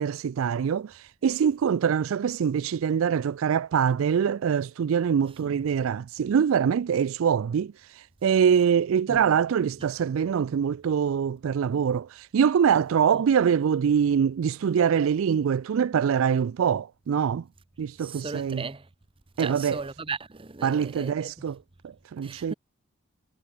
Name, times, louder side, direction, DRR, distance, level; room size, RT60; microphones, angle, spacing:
voice 1, 0.0-17.4 17.8-18.7 19.4-19.8 20.6-21.6 21.8-22.5, right 7 dB, 65° right, 0.3 m, -24 dB
voice 2, 18.0-18.9 19.4-21.1 22.2-22.5, right 4 dB, 25° right, 0.7 m, -36 dB
head